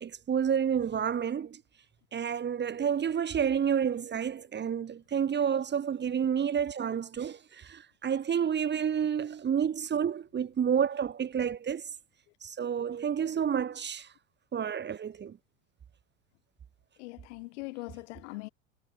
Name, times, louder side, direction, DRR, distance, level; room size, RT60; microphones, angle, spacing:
voice 1, 0.0-1.6 2.1-11.9 12.4-14.1 14.5-15.4, right 8 dB, 25° right, 2.3 m, -30 dB
voice 2, 17.0-18.5, left 23 dB, 60° left, 7.2 m, -41 dB
hypercardioid pair, 80°, 39 cm